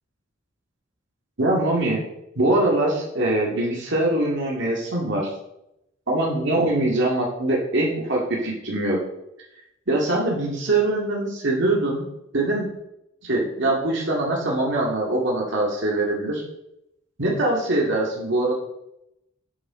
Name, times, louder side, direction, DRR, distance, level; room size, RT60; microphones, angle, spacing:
voice 1, 1.4-2.1 2.4-5.3 6.1-9.0 9.9-12.1 12.3-12.7 13.2-16.4 17.2-18.5, right 2 dB, 60° right, -3 dB, 2.1 m, -23 dB
10.0 x 7.3 x 4.3 m, 0.83 s
head